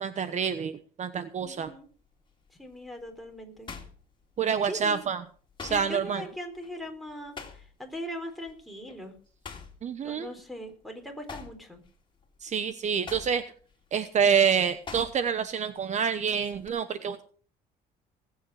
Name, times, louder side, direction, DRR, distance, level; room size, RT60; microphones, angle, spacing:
voice 1, 0.0-1.7 4.4-5.2 5.6-6.2 9.8-10.3 12.4-13.4 13.9-17.2, right 7 dB, 45° right, 12 dB, 1.0 m, -27 dB
sound 1, 1.4-1.7 2.3-4.8 5.1-8.0 8.3-8.5 8.9-10.8 11.1-15.5 15.8-16.7, left 5 dB, 30° left, 2.9 m, -45 dB
voice 2, 1.4-1.9 2.6-3.7 4.7-5.0 5.6-9.1 10.0-11.8, equal, ahead, 6 dB, 4.0 m, -40 dB
19.5 x 8.7 x 4.9 m, 0.43 s
cardioid pair, 110°, 17 cm